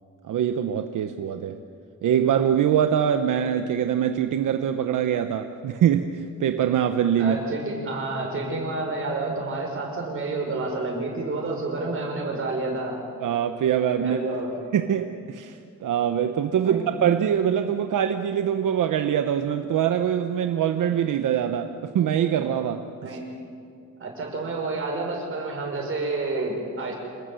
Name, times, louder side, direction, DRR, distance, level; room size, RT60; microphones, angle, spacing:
voice 1, 0.2-1.6 2.0-7.4 13.2-14.2 14.7-23.2, right 9 dB, 80° right, 7 dB, 1.0 m, -24 dB
voice 2, 7.2-13.0 14.0-14.5 16.6-16.9 23.0-23.2 24.0-26.9, right 3 dB, 40° right, 0 dB, 6.1 m, -29 dB
27.5 x 19.5 x 7.9 m, 2.3 s
wide cardioid pair, 165°, 31 cm